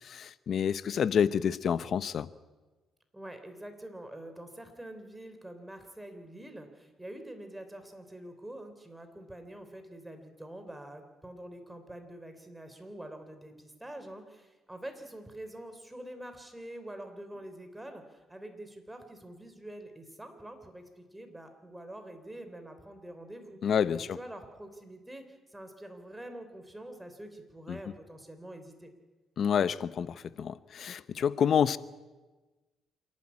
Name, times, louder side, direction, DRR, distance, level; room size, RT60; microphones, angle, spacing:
voice 1, 0.0-2.3 23.6-24.2 27.7-27.8 29.4-31.8, left 8 dB, 60° left, 16 dB, 0.8 m, -28 dB
voice 2, 3.1-23.7 24.0-28.9, right 1 dB, 10° right, 7 dB, 3.4 m, -46 dB
27.0 x 12.0 x 9.8 m, 1.2 s
cardioid pair, 90°, 0 cm